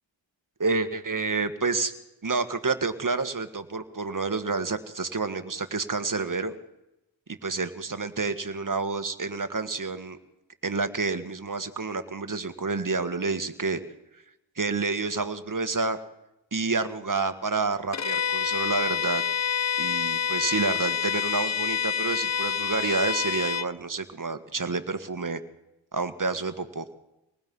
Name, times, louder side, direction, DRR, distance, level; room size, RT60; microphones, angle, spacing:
voice 1, 0.6-1.9 2.2-6.5 7.3-10.2 10.6-13.8 14.6-16.0 16.5-19.2 19.8-25.4 25.9-26.9, right 4 dB, 40° right, 10 dB, 1.8 m, -29 dB
Bowed string instrument, 17.9-23.7, left 7 dB, 35° left, 0.7 m, -27 dB
25.5 x 19.0 x 5.5 m, 0.94 s
cardioid pair, 45°, 47 cm